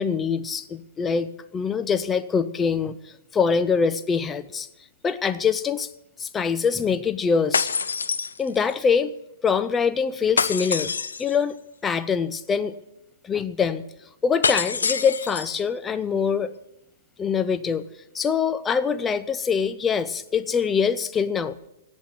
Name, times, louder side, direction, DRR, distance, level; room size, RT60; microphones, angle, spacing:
voice 1, 0.0-2.9 3.3-4.7 5.0-5.9 6.2-7.7 8.4-9.1 9.4-10.9 11.2-11.6 11.8-12.7 13.2-13.8 14.2-16.5 17.2-17.8 18.1-21.6, left 6 dB, 15° left, 12 dB, 0.7 m, -24 dB
sound 1, 7.5-8.8 10.4-11.4 14.4-15.6, left 5 dB, 70° left, 0.7 m, -26 dB
16.5 x 6.3 x 9.1 m, 0.89 s
figure-of-eight pair, 110°, 0 cm